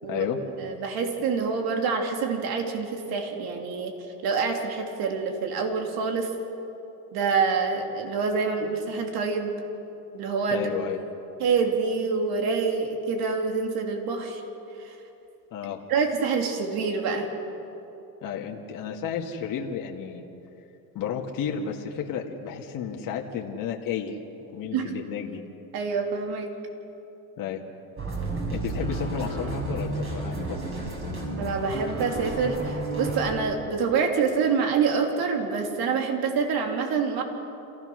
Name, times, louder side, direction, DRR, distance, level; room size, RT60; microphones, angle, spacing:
voice 1, 0.0-0.4 10.5-11.0 15.5-15.8 18.2-20.2 21.0-24.2 24.5-25.4 27.4-27.6 28.5-30.6, left 8 dB, 50° left, 1 dB, 1.9 m, -32 dB
voice 2, 0.6-3.9 4.2-6.3 7.1-9.6 10.1-10.7 11.4-14.4 14.8-14.9 15.9-17.3 24.7-24.9 25.7-26.5 31.4-37.2, right 5 dB, 55° right, 3 dB, 3.2 m, -26 dB
sound 1, 28.0-33.4, right 2 dB, 30° right, 5.8 m, -31 dB
28.0 x 16.0 x 6.4 m, 2.9 s
supercardioid pair, 110°, 43 cm